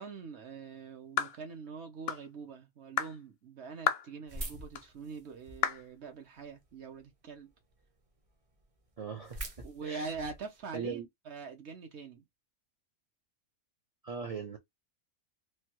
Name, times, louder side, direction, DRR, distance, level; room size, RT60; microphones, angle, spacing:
voice 1, 0.0-7.5 9.6-12.2, right 4 dB, 60° right, 0.9 m, -44 dB
sound 1, 1.2-1.4 2.1-2.3 3.0-3.2 3.9-4.1 4.7-4.9 5.6-5.9, left 9 dB, 65° left, 0.6 m, -31 dB
sound 2, 4.3-5.8 6.3-7.0 7.5-7.6 7.8-7.9 8.3-8.4 8.5-10.6, right 1 dB, 35° right, 0.6 m, -44 dB
voice 2, 9.0-10.1 10.7-11.1 14.0-14.6, right 5 dB, 75° right, 0.3 m, -40 dB
3.3 x 2.2 x 2.9 m
omnidirectional pair, 1.4 m